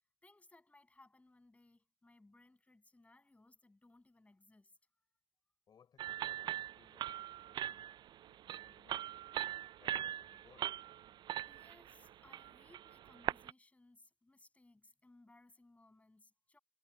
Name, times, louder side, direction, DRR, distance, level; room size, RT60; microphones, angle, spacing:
voice 1, 0.2-4.8 11.5-16.6, left 2 dB, 15° left, 7.3 m, -65 dB
voice 2, 5.7-7.1 7.4-7.9 8.3-9.1 9.8-10.7, left 7 dB, 50° left, 6.4 m, -67 dB
sound 1, 6.0-13.5, right 12 dB, 60° right, 0.4 m, -41 dB
supercardioid pair, 80°, 9 cm